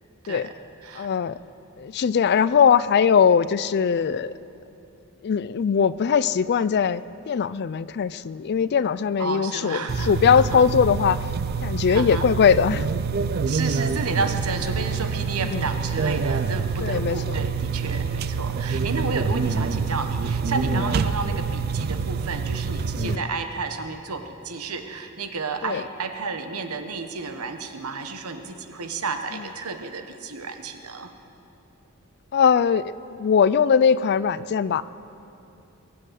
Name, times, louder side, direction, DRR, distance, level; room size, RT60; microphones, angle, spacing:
voice 1, 1.0-1.4 1.8-4.3 5.2-11.2 11.6-12.9 15.5-15.6 16.8-17.4 20.7-20.8 23.0-23.2 25.6-25.8 29.3-29.4 32.3-32.9 33.2-34.8, left 7 dB, 50° left, 17 dB, 0.4 m, -21 dB
voice 2, 9.2-10.1 10.4-10.6 11.9-12.3 13.5-31.1, right 4 dB, 80° right, 7 dB, 1.2 m, -31 dB
sound 1, 9.9-23.2, right 5 dB, 45° right, 0.4 m, -26 dB
22.5 x 7.7 x 8.1 m, 2.7 s
head